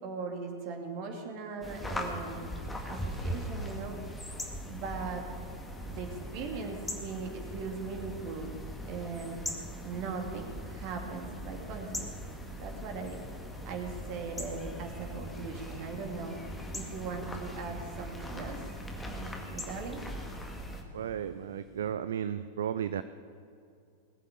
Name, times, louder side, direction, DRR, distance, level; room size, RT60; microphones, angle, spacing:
voice 1, 0.0-2.5 2.8-4.0 4.7-5.2 5.9-8.5 8.8-9.4 9.8-12.1 12.5-13.2 13.7-16.4 16.7-18.6 19.0-20.0, right 4 dB, 45° right, 3 dB, 2.4 m, -39 dB
sound 1, 1.6-20.8, equal, 10° left, 1.9 m, -40 dB
sound 2, 8.6-22.0, right 3 dB, 25° right, 2.8 m, -57 dB
voice 2, 20.9-23.0, right 9 dB, 60° right, 13 dB, 0.4 m, -34 dB
20.0 x 8.0 x 8.5 m, 2.5 s
figure-of-eight pair, 90°, 0 cm